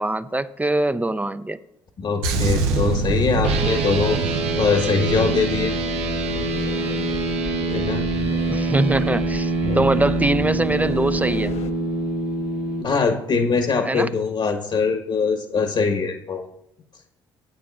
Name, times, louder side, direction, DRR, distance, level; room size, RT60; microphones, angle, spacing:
voice 1, 0.0-1.6 8.5-11.5 13.8-14.1, right 2 dB, 15° right, 14 dB, 0.5 m, -23 dB
voice 2, 2.0-5.7 7.6-8.1 9.6-9.9 12.8-16.4, left 4 dB, 50° left, 4 dB, 1.2 m, -22 dB
sound 1, 2.2-6.8 7.0-7.3, right 4 dB, 85° right, 0.7 m, -25 dB
sound 2, 3.4-12.8, right 3 dB, 65° right, 1.0 m, -25 dB
sound 3, 5.1-11.7, left 3 dB, 65° left, 0.7 m, -33 dB
15.0 x 8.5 x 2.4 m, 0.81 s
hypercardioid pair, 50°, 12 cm